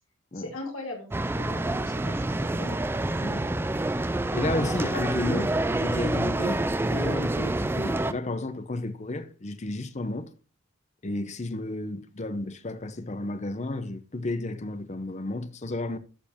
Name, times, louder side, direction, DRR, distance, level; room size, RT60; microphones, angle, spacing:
voice 1, 0.3-2.8, left 2 dB, 75° left, 2.5 m, -40 dB
sound 1, 1.1-8.1, right 2 dB, 10° right, 0.3 m, -27 dB
voice 2, 4.3-10.3 11.0-16.0, left 2 dB, 35° left, 0.7 m, -32 dB
13.5 x 5.0 x 3.6 m
head